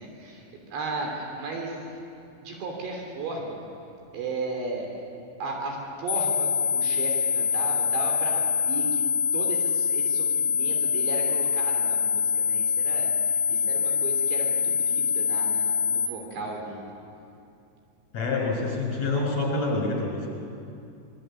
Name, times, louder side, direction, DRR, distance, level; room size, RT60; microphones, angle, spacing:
voice 1, 0.0-1.8 2.4-3.6 4.1-4.9 5.4-9.1 9.3-16.9, right 2 dB, 75° right, 1 dB, 5.4 m, -35 dB
sound 1, 6.1-16.1, left 6 dB, 70° left, 3.3 m, -25 dB
voice 2, 18.1-20.3, left 3 dB, 40° left, 0 dB, 7.3 m, -27 dB
25.0 x 22.0 x 9.1 m, 2.5 s
omnidirectional pair, 5.2 m